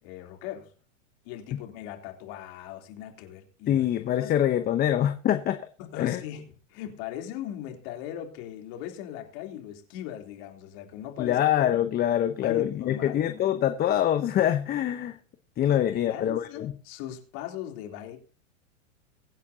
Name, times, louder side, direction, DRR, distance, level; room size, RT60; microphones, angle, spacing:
voice 1, 0.0-0.7 1.2-3.9 4.2-4.3 5.8-11.4 11.7-11.9 12.4-13.3 15.7-18.2, left 11 dB, 50° left, 3.5 m, -39 dB
voice 2, 3.7-5.6 6.0-6.2 11.2-15.2 15.6-16.7, left 11 dB, 25° left, 0.9 m, -25 dB
23.0 x 8.4 x 2.9 m
hypercardioid pair, 120°, 38 cm